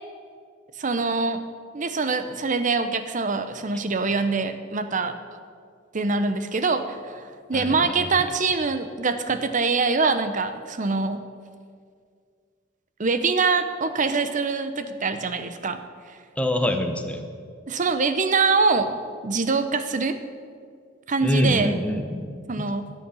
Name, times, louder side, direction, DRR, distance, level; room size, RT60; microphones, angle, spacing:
voice 1, 0.8-1.4 1.7-5.1 5.9-7.2 7.5-11.3 13.0-15.8 17.7-18.9 19.2-20.2 21.1-21.7 22.5-22.9, right 4 dB, 40° right, 10 dB, 0.8 m, -24 dB
voice 2, 7.5-8.1 16.4-17.2 21.2-22.4, equal, 5° left, 5 dB, 1.0 m, -25 dB
12.5 x 8.4 x 7.1 m, 2.1 s
head